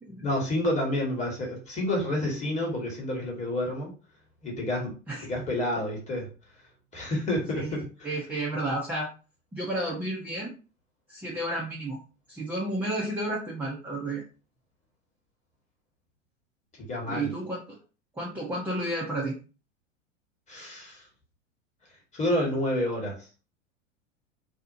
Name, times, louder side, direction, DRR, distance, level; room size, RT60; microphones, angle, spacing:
voice 1, 0.2-3.9 4.4-4.9 5.2-6.3 6.9-8.1 16.8-17.3 20.5-21.0 22.1-23.3, left 1 dB, 20° left, -1 dB, 1.1 m, -29 dB
voice 2, 8.0-9.1 9.5-10.5 11.1-12.0 12.3-14.2 17.1-17.6 18.2-19.4, right 1 dB, 5° right, -4 dB, 0.5 m, -31 dB
2.6 x 2.0 x 2.6 m, 0.34 s
figure-of-eight pair, 90°, 38 cm